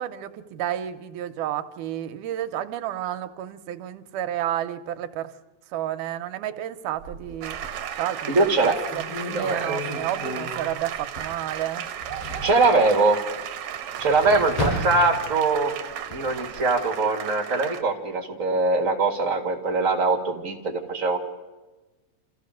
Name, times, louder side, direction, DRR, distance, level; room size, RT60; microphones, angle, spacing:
voice 1, 0.0-5.3 5.7-7.6 8.0-11.9 14.3-14.4, right 11 dB, 90° right, 9 dB, 2.3 m, -31 dB
sound 1, 6.9-7.9 8.4-8.5 8.9-11.5 11.8-12.6 13.8-15.5 16.0-16.6, left 1 dB, 45° left, 7.4 m, -33 dB
sound 2, 7.4-17.8, right 10 dB, 70° right, 2.1 m, -35 dB
voice 2, 8.3-8.8 9.3-9.8 12.4-13.2 14.0-15.7 16.1-21.2, right 3 dB, 30° right, 1 dB, 1.9 m, -22 dB
28.0 x 15.0 x 6.4 m, 1.2 s
omnidirectional pair, 3.6 m